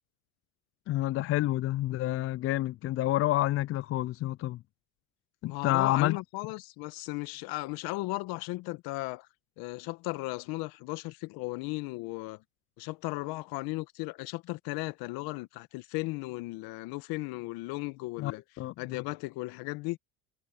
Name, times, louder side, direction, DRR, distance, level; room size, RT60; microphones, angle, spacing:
voice 1, 0.9-4.6 5.4-6.2 18.2-19.0, left 15 dB, 35° left, 0.4 m, -29 dB
voice 2, 5.5-9.3 9.6-12.4 12.8-18.4 18.8-20.0, left 22 dB, 65° left, 1.5 m, -36 dB
supercardioid pair, 95°, 38 cm